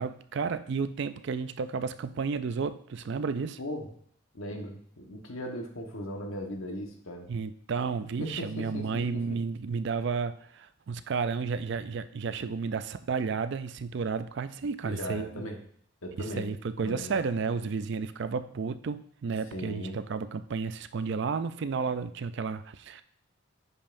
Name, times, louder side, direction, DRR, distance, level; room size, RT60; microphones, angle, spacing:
voice 1, 0.0-3.6 7.3-15.5 16.2-23.0, right 5 dB, 55° right, 12 dB, 0.4 m, -32 dB
voice 2, 4.3-7.3 8.2-9.2 14.8-15.6 16.0-17.2 19.5-20.0, equal, 75° left, 2 dB, 1.3 m, -38 dB
9.8 x 5.4 x 2.6 m, 0.66 s
head